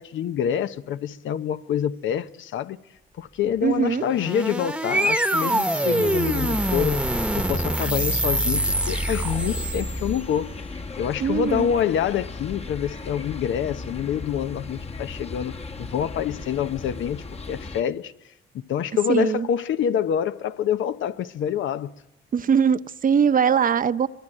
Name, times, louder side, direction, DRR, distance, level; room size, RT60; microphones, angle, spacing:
voice 1, 0.0-2.8 3.2-7.0 7.3-10.5 11.0-18.1 18.7-21.9, left 9 dB, 75° left, 1.0 m, -26 dB
voice 2, 3.6-4.0 11.2-11.7 19.1-19.5 22.3-24.1, right 7 dB, 45° right, 0.8 m, -21 dB
sound 1, 4.0-10.3, right 1 dB, 5° right, 1.1 m, -24 dB
sound 2, 8.5-17.8, left 3 dB, 30° left, 1.2 m, -37 dB
23.5 x 21.5 x 9.0 m
cardioid pair, 90°, 20 cm